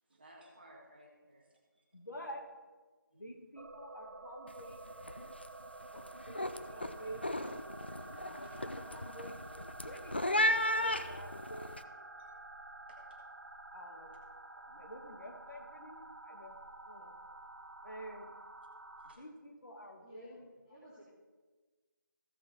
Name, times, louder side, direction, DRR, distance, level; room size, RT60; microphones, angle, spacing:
voice 1, 0.1-1.8 2.2-2.3 3.1-3.3 8.0-8.6 12.2-12.3 12.9-13.2 19.0-19.2, right 1 dB, 30° right, -2 dB, 1.7 m, -60 dB
voice 2, 1.9-2.4 3.1-4.8 5.9-7.6 8.3-9.4 9.8-11.8 13.7-14.1 14.5-16.6 16.8-17.1 17.8-18.3 19.2-20.5, equal, 65° left, 2 dB, 1.9 m, -49 dB
sound 1, 3.6-19.2, right 2 dB, 60° right, 1.0 m, -50 dB
sound 2, 4.5-4.7 5.0-5.5 5.8-11.8, left 1 dB, 30° left, 0.4 m, -35 dB
voice 3, 20.0-21.0, equal, 10° left, -10 dB, 0.9 m, -55 dB
15.5 x 5.6 x 4.3 m, 1.3 s
figure-of-eight pair, 165°, 11 cm